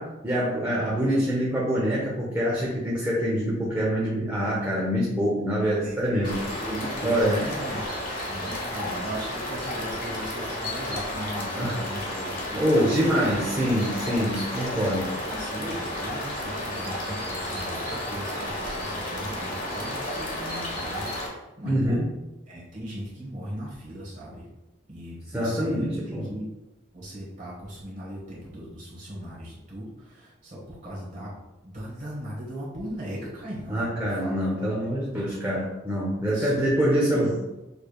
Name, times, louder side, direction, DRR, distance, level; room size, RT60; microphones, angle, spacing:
voice 1, 0.0-6.4 7.0-7.4 11.6-11.8 12.6-15.0 21.6-22.1 25.3-26.3 33.7-37.4, equal, 10° right, -6 dB, 0.8 m, -25 dB
voice 2, 5.6-7.8 8.3-12.9 14.0-14.9 15.3-22.0 22.5-24.5 24.9-26.4 26.9-31.3 31.6-34.7 36.3-36.6, right 1 dB, 40° right, -6 dB, 1.3 m, -38 dB
sound 1, 6.2-21.3, left 1 dB, 45° left, 1.2 m, -32 dB
6.7 x 3.3 x 2.3 m, 1.0 s
head